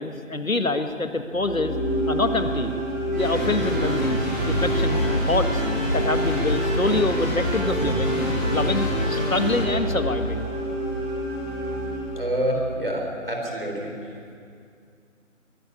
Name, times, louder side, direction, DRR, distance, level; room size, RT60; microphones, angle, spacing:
voice 1, 0.0-1.8 2.1-2.7 3.2-5.6 5.9-8.2 8.5-10.5, left 2 dB, 85° left, 8 dB, 1.8 m, -26 dB
sound 1, 1.3-12.6, equal, 20° left, 3.7 m, -29 dB
sound 2, 3.1-9.6, equal, 15° right, 7.2 m, -26 dB
voice 2, 12.1-13.9, equal, 45° right, 0 dB, 3.9 m, -27 dB
22.5 x 13.5 x 9.8 m, 2.4 s
figure-of-eight pair, 180°, 40 cm